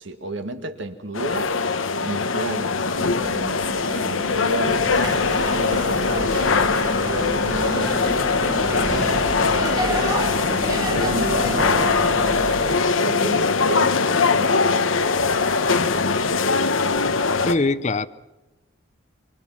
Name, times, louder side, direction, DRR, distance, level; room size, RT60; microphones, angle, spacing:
voice 1, 0.0-1.5 2.0-2.8 3.2-8.1 8.8-9.4 9.9-12.4 12.7-15.1, right 1 dB, 65° right, 2.0 m, -33 dB
sound 1, 1.1-17.6, left 4 dB, 85° left, 1.2 m, -21 dB
ac blowing, 2.9-12.8, right 2 dB, 40° right, 3.2 m, -40 dB
sound 2, 4.6-12.8, right 1 dB, 20° right, 1.8 m, -30 dB
voice 2, 17.4-18.1, left 3 dB, 35° left, 0.7 m, -21 dB
25.5 x 24.0 x 5.9 m
head